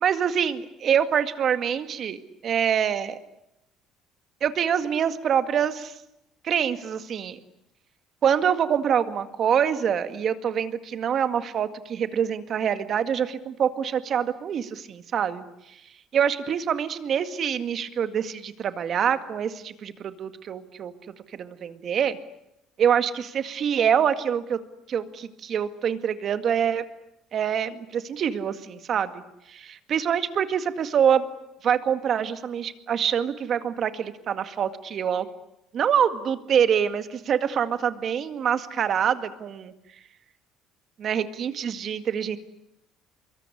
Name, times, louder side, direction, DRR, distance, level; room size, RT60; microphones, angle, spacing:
voice 1, 0.0-3.2 4.4-5.9 6.4-7.4 8.2-15.4 16.1-20.9 21.3-22.2 22.8-24.6 24.9-26.8 27.3-29.2 29.5-31.2 31.6-35.3 35.7-39.7 41.0-42.4, right 8 dB, 50° right, 10 dB, 2.0 m, -25 dB
24.5 x 22.5 x 10.0 m, 0.84 s
cardioid pair, 110°, 0 cm